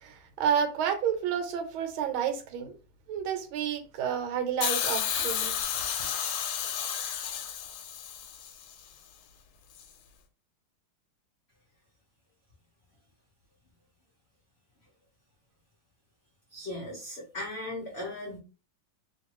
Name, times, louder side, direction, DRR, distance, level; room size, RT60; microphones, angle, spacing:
voice 1, 0.0-2.8 3.1-5.5, right 8 dB, 80° right, 1.5 m, -30 dB
Hiss, 4.6-8.7 9.8-9.9, left 9 dB, 85° left, 1.4 m, -32 dB
voice 2, 16.5-18.4, left 1 dB, 45° left, 0.9 m, -37 dB
3.1 x 2.6 x 3.0 m
omnidirectional pair, 2.3 m